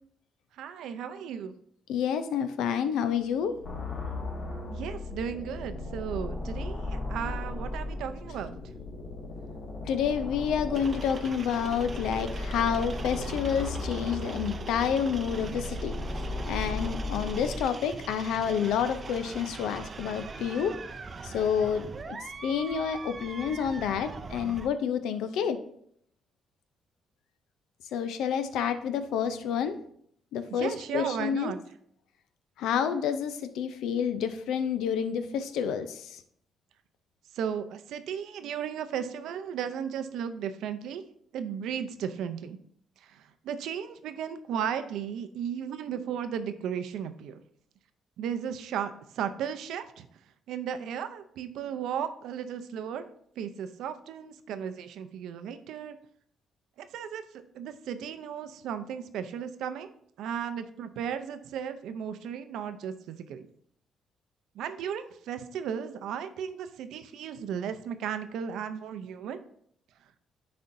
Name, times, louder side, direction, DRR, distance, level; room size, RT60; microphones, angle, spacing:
voice 1, 0.5-1.5 4.7-8.6 30.5-31.6 37.3-41.0 41.3-42.6 43.0-47.4 48.2-50.1 50.5-53.0 53.4-56.0 56.8-57.2 57.5-59.9 60.2-63.5 64.5-69.4, right 8 dB, 85° right, 10 dB, 0.5 m, -35 dB
voice 2, 1.9-3.5 9.9-15.9 16.5-20.7 21.2-22.2 22.4-25.6 27.9-29.8 30.3-31.5 32.6-36.2, left 7 dB, 85° left, 10 dB, 0.5 m, -29 dB
sound 1, 3.6-17.6, left 2 dB, 60° left, 1.8 m, -36 dB
sound 2, 10.7-24.7, right 4 dB, 40° right, 0.5 m, -41 dB
10.0 x 4.3 x 2.6 m, 0.67 s
cardioid pair, 90°, 0 cm